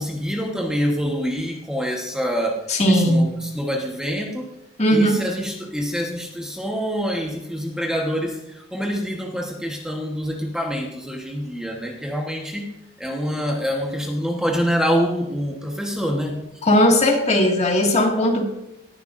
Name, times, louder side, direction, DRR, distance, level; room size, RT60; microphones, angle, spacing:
voice 1, 0.0-4.5 4.9-12.7 13.0-16.4, equal, 5° right, 1 dB, 1.2 m, -26 dB
voice 2, 2.7-3.3 4.8-5.2 16.6-18.5, equal, 30° left, 0 dB, 2.0 m, -17 dB
19.0 x 10.5 x 2.6 m, 0.88 s
head